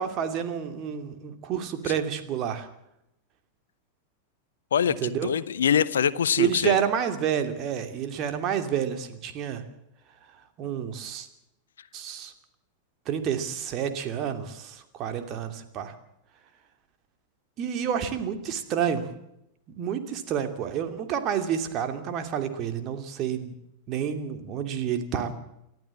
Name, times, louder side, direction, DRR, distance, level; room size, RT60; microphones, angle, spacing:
voice 1, 0.0-2.7 5.0-5.3 6.4-9.6 10.6-11.3 11.9-12.3 13.1-15.9 17.6-19.1 19.8-23.5 23.9-25.3, right 8 dB, 35° right, 8 dB, 2.7 m, -29 dB
voice 2, 4.7-6.8, left 8 dB, 65° left, 18 dB, 0.8 m, -24 dB
29.0 x 12.5 x 7.4 m, 0.83 s
figure-of-eight pair, 90°, 0 cm